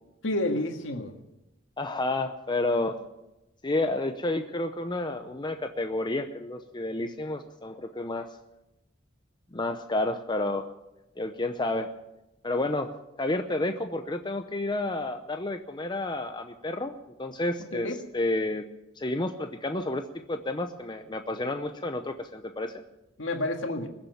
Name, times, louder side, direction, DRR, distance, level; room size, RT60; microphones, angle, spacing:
voice 1, 0.2-1.1 17.6-18.0 23.2-23.9, left 1 dB, 90° left, 4 dB, 1.9 m, -30 dB
voice 2, 1.8-3.0 3.6-8.3 9.5-10.7 11.2-11.9 12.4-12.9 13.2-17.9 18.1-18.6 19.0-22.8, left 2 dB, 25° left, 7 dB, 0.7 m, -30 dB
21.5 x 7.2 x 9.4 m, 0.96 s
head